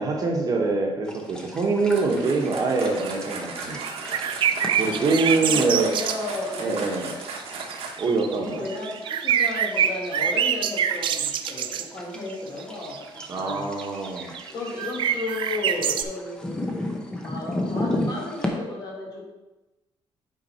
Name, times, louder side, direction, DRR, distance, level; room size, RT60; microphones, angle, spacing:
voice 1, 0.0-3.8 4.8-5.9 6.6-7.1 8.0-8.6 13.3-14.3, right 3 dB, 35° right, 1 dB, 1.3 m, -24 dB
sound 1, 1.0-18.5, left 1 dB, 10° left, 0.8 m, -36 dB
sound 2, 1.8-8.2, right 4 dB, 80° right, 1.2 m, -37 dB
voice 2, 2.0-2.7 4.8-7.1 8.3-13.7 14.5-19.3, left 2 dB, 40° left, -3 dB, 2.2 m, -34 dB
sound 3, 3.0-3.4 3.7-6.2 7.0-7.1 7.4-11.8 12.6-16.0, right 8 dB, 55° right, 0.4 m, -26 dB
8.3 x 4.6 x 4.4 m, 1.1 s
cardioid pair, 165°, 10 cm